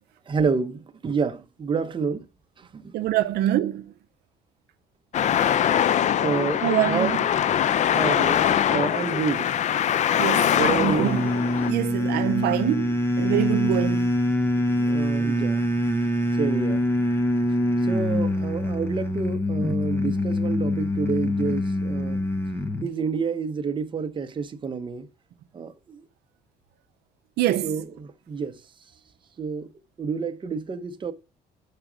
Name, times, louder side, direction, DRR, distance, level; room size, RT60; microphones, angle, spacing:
voice 1, 0.3-2.3 2.6-2.9 5.3-5.4 6.2-7.2 7.9-9.5 10.5-11.2 14.5-15.6 16.4-16.8 17.8-22.2 22.8-25.1 25.5-26.0 27.6-28.6 29.4-29.7 30.0-31.1, right 5 dB, 30° right, 0.8 m, -29 dB
voice 2, 2.9-3.8 6.6-7.2 10.2-11.3 11.7-14.1 27.4-27.7, right 13 dB, 75° right, 0.6 m, -25 dB
Traffic noise roadway noise, 5.1-11.7, left 10 dB, 45° left, 0.4 m, -22 dB
sound 1, 11.0-22.9, left 1 dB, 15° left, 0.8 m, -24 dB
6.6 x 4.9 x 6.0 m
cardioid pair, 110°, 17 cm